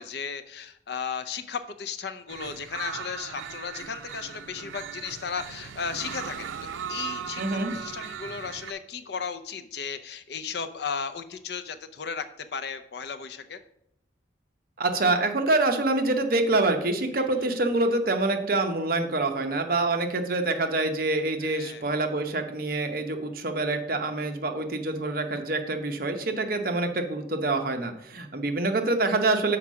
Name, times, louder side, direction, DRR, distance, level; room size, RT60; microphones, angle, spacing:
voice 1, 0.0-13.6 21.4-21.9, left 6 dB, 60° left, 11 dB, 0.5 m, -35 dB
sound 1, 2.3-8.7, right 7 dB, 90° right, 0.5 m, -38 dB
voice 2, 7.4-7.7 14.8-29.6, right 2 dB, 50° right, 5 dB, 0.8 m, -26 dB
5.8 x 4.6 x 6.2 m, 0.75 s
head